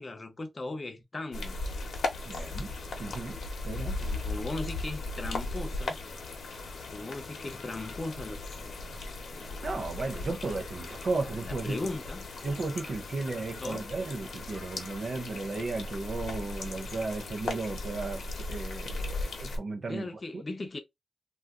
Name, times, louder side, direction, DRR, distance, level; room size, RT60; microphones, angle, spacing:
voice 1, 0.0-1.6 4.0-6.0 6.9-9.0 9.3-9.7 11.2-12.3 13.6-13.9 19.9-20.8, left 2 dB, 25° left, 0.7 m, -38 dB
sound 1, 1.3-19.6, left 2 dB, 65° left, 0.8 m, -37 dB
voice 2, 2.3-2.7 3.0-4.0 9.6-11.8 12.4-18.2 18.5-20.1 20.3-20.4, right 3 dB, 45° right, 0.5 m, -34 dB
2.4 x 2.3 x 3.5 m
wide cardioid pair, 180°, 0 cm